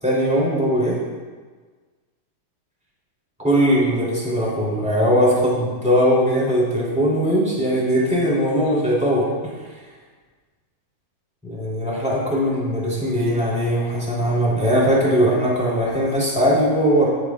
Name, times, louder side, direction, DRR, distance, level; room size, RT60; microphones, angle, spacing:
voice 1, 0.0-0.9 3.4-9.3 11.4-17.1, equal, ahead, -7 dB, 2.8 m, -20 dB
18.0 x 8.0 x 2.5 m, 1.4 s
omnidirectional pair, 4.1 m